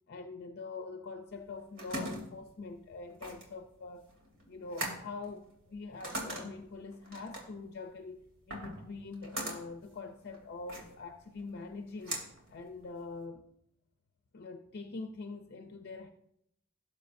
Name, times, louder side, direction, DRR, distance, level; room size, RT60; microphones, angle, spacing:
voice 1, 0.1-4.1 4.4-12.2 12.5-13.4 14.3-16.1, left 3 dB, 50° left, 0.6 m, -44 dB
sound 1, 1.3-13.3, right 1 dB, 60° right, 2.9 m, -43 dB
17.5 x 7.3 x 2.6 m
head